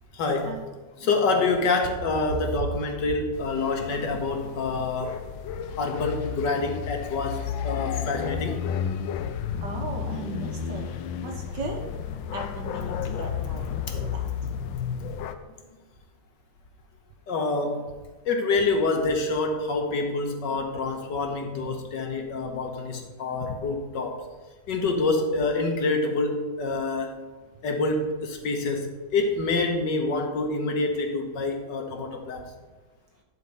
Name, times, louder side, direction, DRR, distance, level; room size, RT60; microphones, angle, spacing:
voice 1, 0.1-0.5 1.0-5.2 5.8-8.6 17.3-17.9 18.3-24.2 24.7-27.1 27.6-32.5, left 3 dB, 65° left, 3 dB, 1.8 m, -27 dB
sound 1, 3.3-15.3, left 8 dB, 90° left, 1.4 m, -32 dB
voice 2, 9.6-10.9 11.2-11.8 12.3-14.2, right 3 dB, 70° right, 1 dB, 1.7 m, -36 dB
11.0 x 4.5 x 5.5 m, 1.3 s
omnidirectional pair, 2.1 m